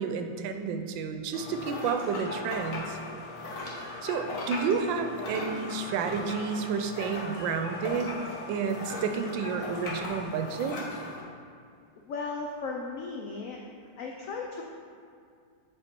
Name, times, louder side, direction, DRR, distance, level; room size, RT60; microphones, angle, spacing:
voice 1, 0.0-3.0 4.0-8.2 8.5-10.8, right 6 dB, 80° right, 6 dB, 1.3 m, -31 dB
sound 1, 1.3-11.2, left 2 dB, 50° left, 1.3 m, -38 dB
voice 2, 12.1-13.6 14.0-14.6, left 4 dB, 85° left, 0 dB, 0.7 m, -36 dB
7.7 x 4.3 x 4.4 m, 2.3 s
omnidirectional pair, 2.1 m